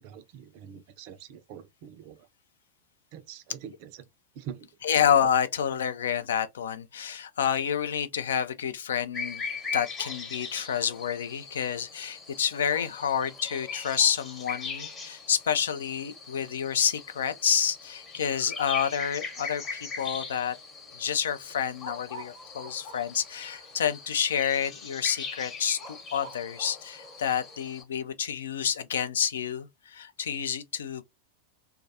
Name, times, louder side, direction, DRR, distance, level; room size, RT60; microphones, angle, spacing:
voice 1, 0.0-2.3 3.1-4.1 4.3-4.7, right 9 dB, 45° right, 0.4 m, -44 dB
voice 2, 4.8-9.4 9.7-20.5 21.0-31.0, left 8 dB, 65° left, 0.4 m, -29 dB
sound 1, 9.1-27.8, left 4 dB, 25° left, 0.9 m, -40 dB
2.3 x 2.2 x 2.6 m
figure-of-eight pair, 90°, 0 cm